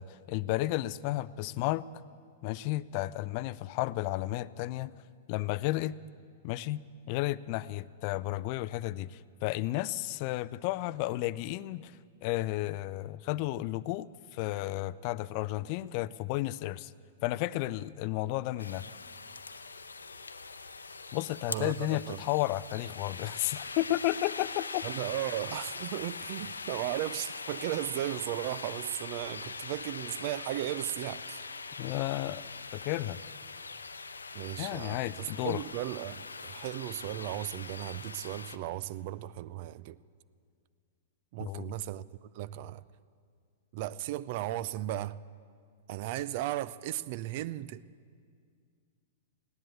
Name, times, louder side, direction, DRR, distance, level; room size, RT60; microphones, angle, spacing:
voice 1, 0.0-1.9 2.4-4.9 5.3-6.0 6.4-6.8 7.1-11.9 12.2-16.9 17.2-18.8 21.1-24.9 31.8-32.4 32.7-33.2 34.6-35.6 41.4-41.7, left 17 dB, 45° left, 0.4 m, -32 dB
sound 1, 18.6-38.6, left 4 dB, 90° left, 0.6 m, -42 dB
voice 2, 21.5-22.2 24.8-31.4 34.3-40.0 41.3-42.8 43.7-45.2 45.9-47.8, right 14 dB, 50° right, 0.4 m, -36 dB
16.5 x 10.5 x 8.2 m
hypercardioid pair, 110°, 0 cm